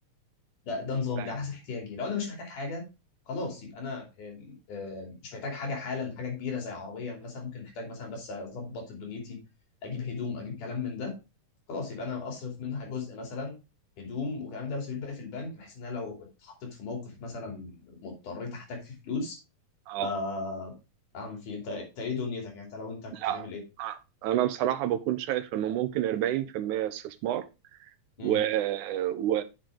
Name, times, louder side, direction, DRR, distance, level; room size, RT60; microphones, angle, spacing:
voice 1, 0.6-2.8 3.3-9.4 9.8-11.1 11.7-13.6 14.0-19.4 20.0-20.7 21.1-23.6 28.2-28.4, left 4 dB, 90° left, 4.5 m, -36 dB
voice 2, 23.1-23.5 23.8-27.5 28.2-29.4, right 12 dB, 85° right, 2.2 m, -29 dB
9.0 x 6.4 x 3.6 m
omnidirectional pair, 3.5 m